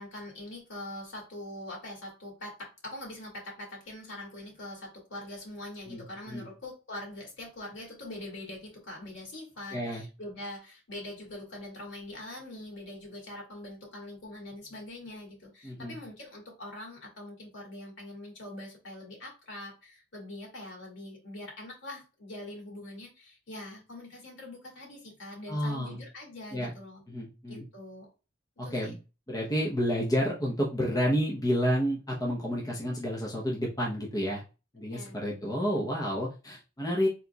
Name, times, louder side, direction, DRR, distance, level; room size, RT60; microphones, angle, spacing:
voice 1, 0.0-27.0 27.5-28.1 28.6-28.9 34.9-35.4, left 1 dB, 65° left, -1 dB, 2.1 m, -43 dB
voice 2, 5.9-6.5 9.7-10.0 15.6-15.9 25.5-26.0 26.5-26.7 27.1-27.6 28.6-29.0 29.3-34.4 34.7-37.1, equal, 20° left, -3 dB, 0.8 m, -30 dB
4.4 x 3.9 x 2.3 m, 0.31 s
head